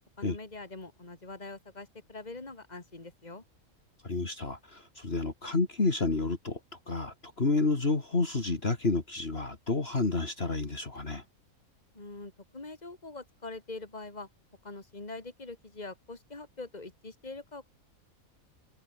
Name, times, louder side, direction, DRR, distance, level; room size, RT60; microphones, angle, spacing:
voice 1, 0.2-3.4 11.9-14.3 14.6-17.6, left 3 dB, 30° left, 3.1 m, -43 dB
voice 2, 4.0-6.6 6.9-11.2, left 3 dB, 45° left, 2.8 m, -30 dB
open air
omnidirectional pair, 1.4 m